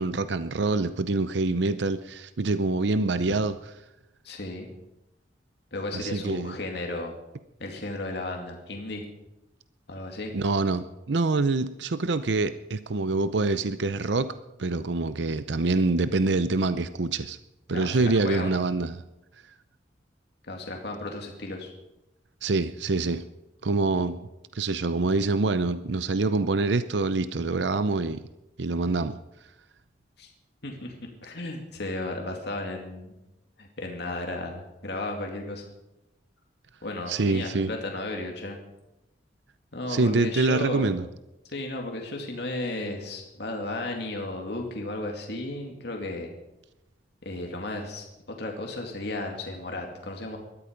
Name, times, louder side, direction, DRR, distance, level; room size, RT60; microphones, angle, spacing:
voice 1, 0.0-3.5 5.9-6.5 10.3-14.3 14.6-17.4 17.7-19.0 22.4-23.2 23.6-24.2 24.5-28.2 28.6-29.2 37.1-37.7 39.9-41.1, right 3 dB, 70° right, 12 dB, 0.7 m, -25 dB
voice 2, 4.2-4.7 5.7-7.2 7.6-9.1 9.9-10.3 17.7-18.6 20.5-21.7 30.2-30.3 30.6-33.1 33.6-35.6 36.8-38.6 39.7-41.0 41.5-46.3 47.2-50.4, left 2 dB, 65° left, 2 dB, 2.4 m, -34 dB
19.5 x 13.5 x 5.2 m, 0.94 s
head